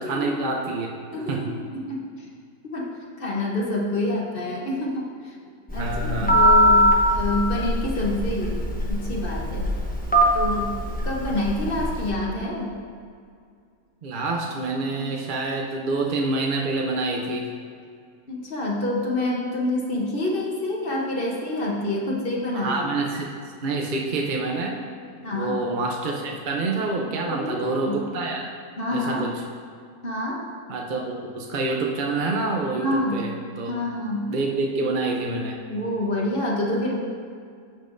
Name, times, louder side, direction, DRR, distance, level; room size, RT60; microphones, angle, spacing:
voice 1, 0.0-0.9 1.3-1.5 5.8-6.4 14.0-17.5 22.5-23.3 23.6-24.8 25.3-28.5 28.9-29.3 30.7-33.7 34.3-35.6, right 3 dB, 50° right, 0 dB, 0.6 m, -27 dB
voice 2, 1.1-2.0 2.7-2.9 3.2-5.3 5.7-8.6 8.9-9.7 10.3-10.8 11.0-12.7 18.3-23.0 25.2-25.5 27.2-28.0 28.8-29.2 30.0-30.4 32.8-33.2 33.7-34.3 35.7-37.0, left 1 dB, 45° left, -3 dB, 1.1 m, -27 dB
Telephone, 5.7-12.1, equal, 10° left, 0.6 m, -21 dB
14.0 x 5.5 x 2.6 m, 2.2 s
omnidirectional pair, 1.5 m